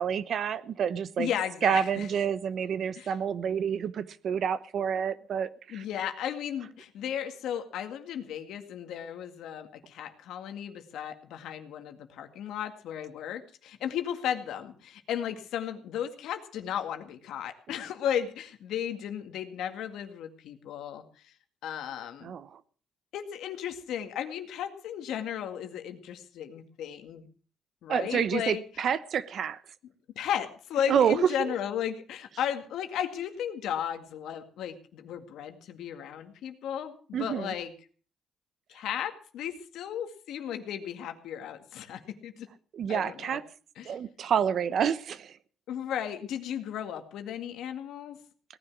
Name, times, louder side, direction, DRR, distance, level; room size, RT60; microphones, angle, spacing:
voice 1, 0.0-1.3 1.6-5.8 22.2-22.6 27.9-29.6 30.9-31.5 37.1-37.5 42.7-43.4 43.8-45.4, right 8 dB, 60° right, 15 dB, 1.0 m, -28 dB
voice 2, 1.2-2.1 2.9-3.1 5.7-21.3 21.6-22.3 23.1-27.3 27.8-28.6 30.2-37.7 38.7-42.5 42.9-43.4 43.8-43.9 45.7-48.2, left 9 dB, 80° left, 7 dB, 2.0 m, -35 dB
18.0 x 10.5 x 6.1 m, 0.42 s
cardioid pair, 90°, 0 cm